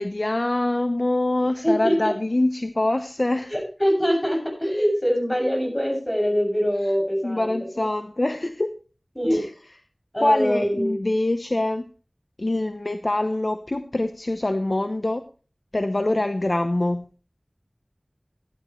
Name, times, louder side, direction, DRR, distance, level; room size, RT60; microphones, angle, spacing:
voice 1, 0.0-3.5 7.2-8.7 9.3-9.5 10.2-11.9 12.4-15.2 15.7-17.1, left 1 dB, 55° left, 8 dB, 0.9 m, -24 dB
voice 2, 1.6-2.1 3.5-7.5 9.2-9.4 10.1-11.0, equal, 20° left, 2 dB, 7.1 m, -23 dB
16.0 x 11.5 x 3.2 m, 0.35 s
wide cardioid pair, 45°, 0 cm